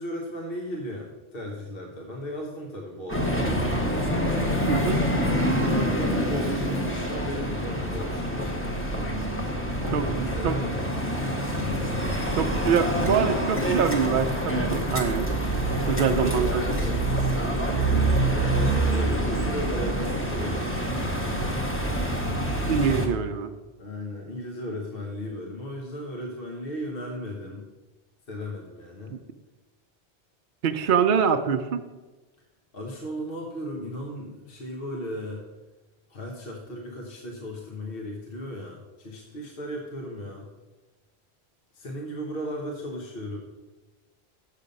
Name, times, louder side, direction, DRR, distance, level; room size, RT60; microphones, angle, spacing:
voice 1, 0.0-3.9 5.2-9.2 9.8-11.3 15.6-21.0 23.8-27.6 28.3-29.2 32.7-35.4 36.1-40.5 41.7-43.4, equal, 60° left, 0 dB, 1.4 m, -36 dB
sound 1, 3.1-23.1, right 1 dB, 15° left, 1.0 m, -26 dB
voice 2, 4.7-5.0 9.9-10.6 12.4-15.3 15.9-16.6 22.7-23.5 29.1-29.2 30.6-31.8, right 7 dB, 60° right, 6 dB, 0.7 m, -24 dB
7.4 x 6.8 x 5.3 m, 1.2 s
omnidirectional pair, 1.1 m